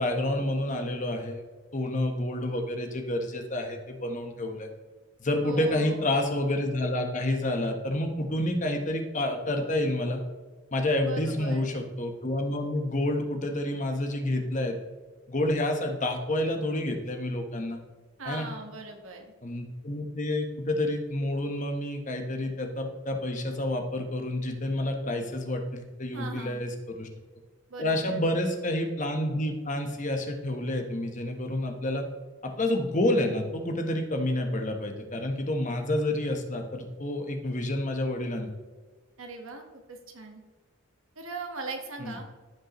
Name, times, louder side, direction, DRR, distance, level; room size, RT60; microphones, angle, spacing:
voice 1, 0.0-1.4 1.7-4.7 5.2-10.2 10.7-14.8 15.3-17.8 18.2-18.5 19.4-27.1 27.8-32.0 32.4-38.5 42.0-42.1, left 1 dB, 35° left, 4 dB, 1.1 m, -29 dB
voice 2, 5.4-6.2 11.0-11.7 18.2-19.3 26.1-26.6 27.7-28.3 39.2-40.4 41.1-42.2, right 3 dB, 80° right, 4 dB, 1.4 m, -40 dB
15.0 x 5.4 x 3.1 m, 1.4 s
head